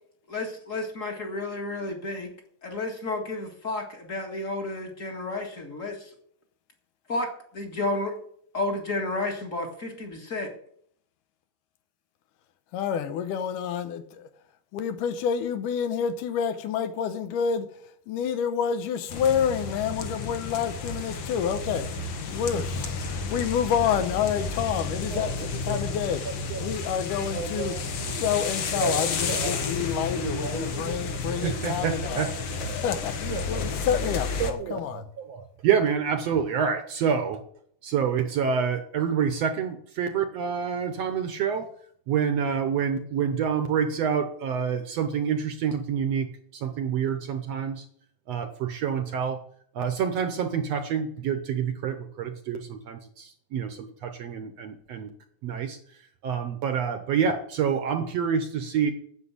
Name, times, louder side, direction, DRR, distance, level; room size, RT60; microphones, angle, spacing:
voice 1, 0.3-2.3 2.6-6.1 7.1-8.2 8.5-10.5, left 2 dB, 35° left, 1.5 m, -31 dB
voice 2, 12.7-14.3 14.7-26.2 26.6-27.8 28.1-32.3 32.7-35.0, left 8 dB, 80° left, 2.4 m, -28 dB
sound 1, 19.1-34.5, left 4 dB, 60° left, 1.2 m, -32 dB
voice 3, 25.1-25.8 26.2-26.7 27.1-28.2 28.8-31.0 31.2-32.8 33.3-33.5 33.7-33.9 34.4-35.0 35.3-37.4 37.8-41.7 42.1-47.8 48.3-49.4 49.7-55.1 55.4-58.9, right 7 dB, 70° right, 1.7 m, -28 dB
9.6 x 7.3 x 8.4 m
omnidirectional pair, 3.7 m